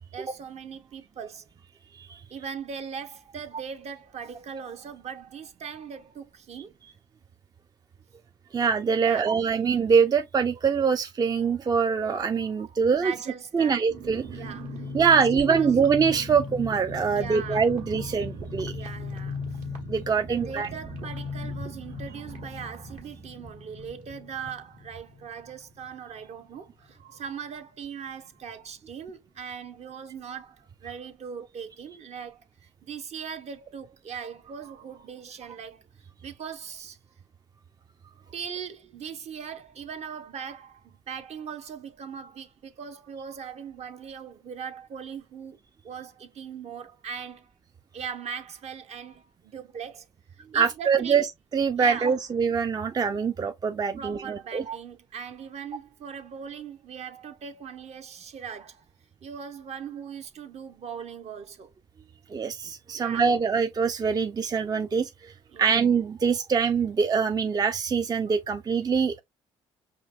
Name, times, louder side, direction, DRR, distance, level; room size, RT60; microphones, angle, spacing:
voice 1, 0.1-1.5 2.3-6.7 9.0-9.4 12.4-13.9 14.3-15.8 17.1-17.7 18.0-18.1 18.7-19.6 20.3-35.8 36.2-37.0 38.0-45.6 45.8-47.5 47.9-50.1 50.3-51.2 51.8-52.2 53.9-58.8 59.2-61.7 62.9-63.3 65.5-65.8, right 7 dB, 50° right, 0.8 m, -40 dB
voice 2, 1.9-2.2 8.5-13.1 13.5-14.4 14.9-18.7 19.9-20.7 50.5-51.3 51.5-54.8 62.3-65.3 65.6-69.2, right 6 dB, 30° right, 0.4 m, -24 dB
sound 1, 13.9-26.2 26.5-26.6 26.9-27.2, left 2 dB, 65° right, 1.5 m, -38 dB
5.0 x 2.5 x 2.4 m
hypercardioid pair, 55°, 14 cm